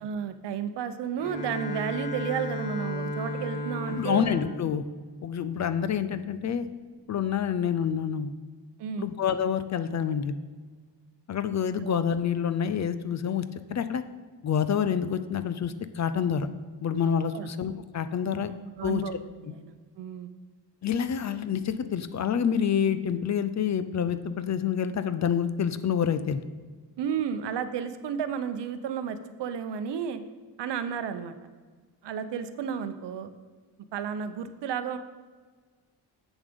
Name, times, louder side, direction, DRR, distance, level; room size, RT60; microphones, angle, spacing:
voice 1, 0.0-4.3 8.8-9.1 11.8-11.9 17.3-17.5 18.3-18.5 18.8-19.1 19.4-20.3 27.0-30.2 30.6-31.3 32.0-33.3 33.9-35.0, right 7 dB, 70° right, 11 dB, 0.7 m, -32 dB
Bowed string instrument, 1.2-6.0, left 1 dB, 80° left, 2.4 m, -35 dB
voice 2, 4.0-4.8 5.2-6.7 7.1-8.3 9.0-10.3 11.3-13.4 13.7-14.0 14.4-16.5 16.8-18.5 18.8-19.0 20.8-26.4, left 8 dB, 40° left, 12 dB, 0.4 m, -27 dB
8.2 x 7.1 x 5.1 m, 1.5 s
wide cardioid pair, 155°, 43 cm